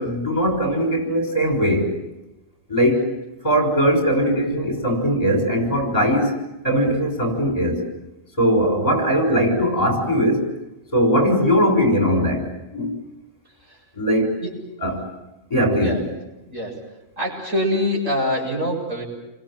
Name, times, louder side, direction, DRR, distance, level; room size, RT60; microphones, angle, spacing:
voice 1, 0.0-1.9 2.7-3.1 3.4-6.3 6.6-7.8 8.4-10.5 10.9-13.0 14.0-14.4 14.8-15.1 15.5-16.0, equal, 30° left, 3 dB, 6.4 m, -20 dB
voice 2, 16.5-16.9 17.2-19.1, left 1 dB, 80° right, -1 dB, 8.3 m, -25 dB
29.5 x 24.0 x 7.5 m, 0.97 s
omnidirectional pair, 1.3 m